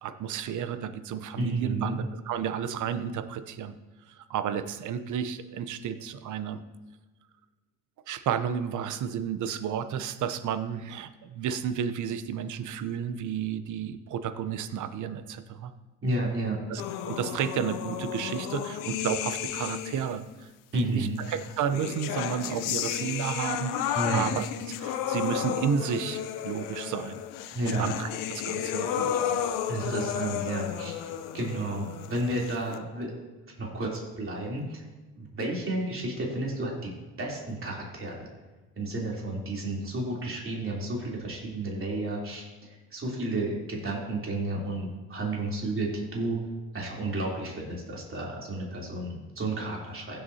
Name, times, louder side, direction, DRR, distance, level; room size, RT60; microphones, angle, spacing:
voice 1, 0.0-3.8 4.1-6.6 8.1-15.7 16.7-27.2 27.6-29.6, right 8 dB, 60° right, 12 dB, 0.8 m, -32 dB
voice 2, 1.4-2.0 16.0-16.6 20.7-21.2 23.9-24.2 27.5-27.9 29.7-31.1 31.3-33.1 33.6-34.8 35.2-36.9 37.2-38.3 38.8-46.4 46.7-50.2, right 2 dB, 40° right, -3 dB, 3.4 m, -32 dB
sound 1, 16.8-20.2 21.2-32.8, left 10 dB, 75° left, 0.7 m, -33 dB
16.0 x 8.0 x 2.8 m, 1.2 s
supercardioid pair, 65°, 33 cm